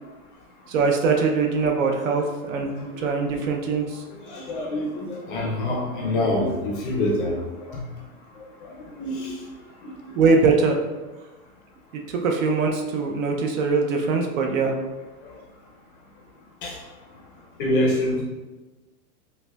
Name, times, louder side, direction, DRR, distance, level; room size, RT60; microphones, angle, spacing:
voice 1, 0.7-2.7 3.0-4.0 10.2-10.8 11.9-14.7, right 4 dB, 60° right, 2 dB, 0.6 m, -22 dB
voice 2, 2.8-3.2 4.2-7.4 7.7-7.8 8.4-9.4 9.8-10.2 16.6-16.8 17.6-18.2, left 1 dB, 35° left, -2 dB, 0.5 m, -26 dB
5.3 x 2.1 x 2.2 m, 1.2 s
supercardioid pair, 160°, 45 cm